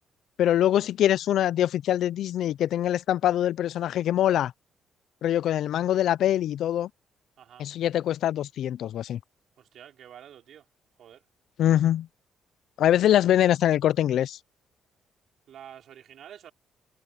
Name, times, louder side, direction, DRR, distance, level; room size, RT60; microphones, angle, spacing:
voice 1, 0.4-4.5 5.2-6.9 7.6-9.2 11.6-12.1 12.8-14.4, left 11 dB, 75° left, 0.5 m, -23 dB
voice 2, 9.6-10.7 11.0-11.2 15.5-16.5, right 10 dB, 70° right, 5.1 m, -48 dB
cardioid pair, 90°, 0 cm